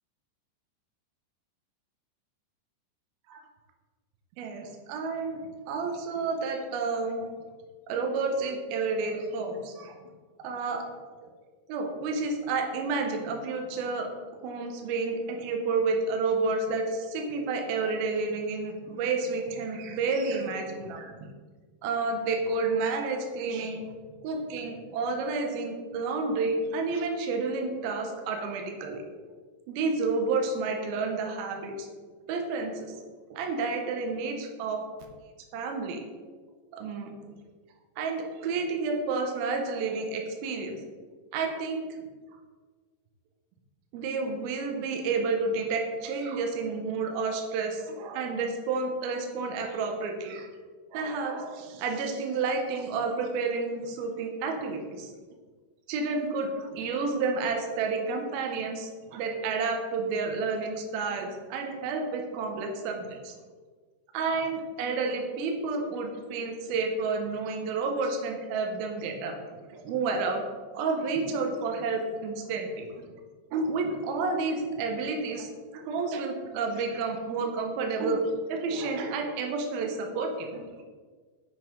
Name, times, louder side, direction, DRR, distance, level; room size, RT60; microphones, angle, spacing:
voice 1, 4.4-5.4 5.7-7.3 7.9-10.0 10.4-10.8 11.2-11.3 11.7-14.1 14.4-21.2 21.8-23.8 24.2-29.1 29.7-31.9 32.3-33.0 33.3-34.8 35.5-36.0 36.7-37.3 38.0-40.8 41.3-41.8 43.9-50.5 50.9-55.1 55.9-63.3 64.1-70.4 70.7-73.0 73.5-80.6, right 4 dB, 75° right, 3 dB, 2.3 m, -30 dB
7.6 x 5.3 x 3.7 m, 1.5 s
omnidirectional pair, 5.0 m